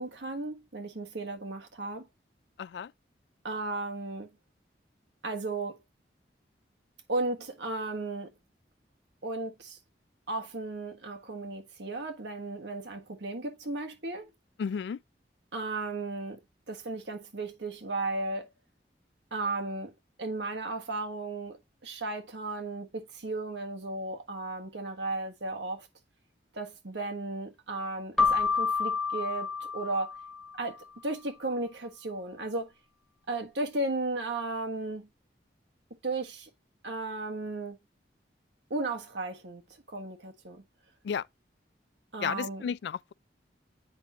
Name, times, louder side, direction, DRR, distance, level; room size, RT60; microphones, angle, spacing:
voice 1, 0.0-2.1 3.4-4.3 5.2-5.8 7.1-8.3 9.2-9.8 10.3-14.3 15.5-16.4 16.7-18.5 19.3-19.9 20.2-25.9 26.5-30.1 30.5-32.7 33.3-35.1 36.0-36.5 36.8-37.8 38.7-40.6 42.1-42.7, right 2 dB, 85° right, 1.5 m, -35 dB
voice 2, 2.6-2.9 14.6-15.0 41.0-41.3 42.2-43.1, left 7 dB, 75° left, 0.3 m, -33 dB
Keyboard (musical), 28.2-30.7, left 5 dB, 5° left, 0.6 m, -29 dB
8.2 x 5.5 x 2.9 m
head